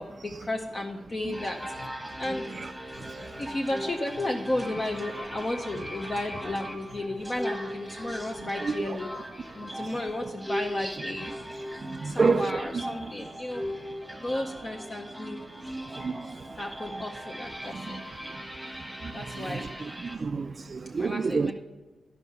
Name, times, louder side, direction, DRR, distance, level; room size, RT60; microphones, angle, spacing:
voice 1, 0.0-1.6 2.2-2.5 3.4-9.1 9.5-11.6 12.0-13.6 14.2-15.4 16.6-18.0 19.1-19.7 21.0-21.5, left 1 dB, 30° left, 0.7 m, -33 dB
sound 1, 1.3-20.2, equal, ahead, 1.4 m, -39 dB
voice 2, 8.6-9.0 11.9-12.8 15.9-16.3 19.0-19.1 19.5-19.6 20.0-21.5, right 4 dB, 40° right, 0.4 m, -28 dB
11.0 x 5.4 x 6.6 m
wide cardioid pair, 140°, 0 cm